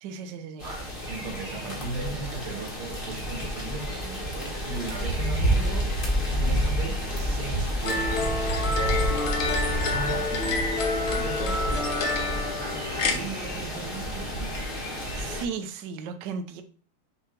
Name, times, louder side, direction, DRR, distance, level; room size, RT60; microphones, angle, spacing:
voice 1, 0.0-0.6 15.1-16.6, right 5 dB, 65° right, 1.2 m, -35 dB
sound 1, 0.6-15.4, equal, 30° left, 1.4 m, -29 dB
voice 2, 0.6-5.9 6.4-8.3 9.9-11.8 12.2-14.8, right 4 dB, 85° right, 2.5 m, -38 dB
sound 2, 7.8-13.2, left 3 dB, 70° left, 1.8 m, -28 dB
6.7 x 2.9 x 5.1 m
omnidirectional pair, 2.3 m